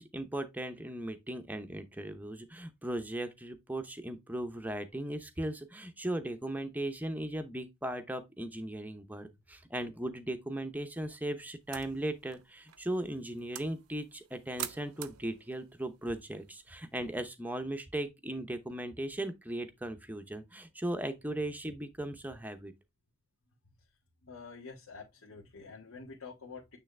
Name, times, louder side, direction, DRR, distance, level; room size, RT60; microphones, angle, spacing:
voice 1, 0.0-22.7, right 1 dB, 5° right, 0.7 m, -37 dB
sound 1, 11.6-17.2, right 12 dB, 80° right, 0.6 m, -47 dB
voice 2, 24.2-26.8, left 4 dB, 80° left, 1.7 m, -48 dB
8.9 x 3.3 x 3.3 m
head